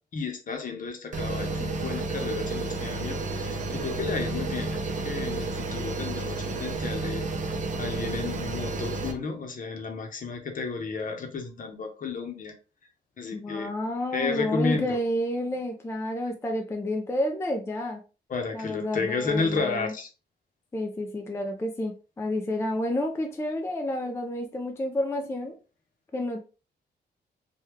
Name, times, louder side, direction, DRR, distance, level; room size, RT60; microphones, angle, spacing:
voice 1, 0.1-7.5 7.8-12.6 13.2-13.7 14.1-15.0 18.3-20.1, left 4 dB, 50° left, 0.8 m, -32 dB
sound 1, 1.1-9.1, right 3 dB, 45° right, 0.6 m, -31 dB
voice 2, 13.3-18.0 18.5-19.9 20.7-25.6 26.1-26.4, left 1 dB, 15° left, 0.4 m, -30 dB
3.3 x 2.2 x 3.1 m
wide cardioid pair, 130°, 18 cm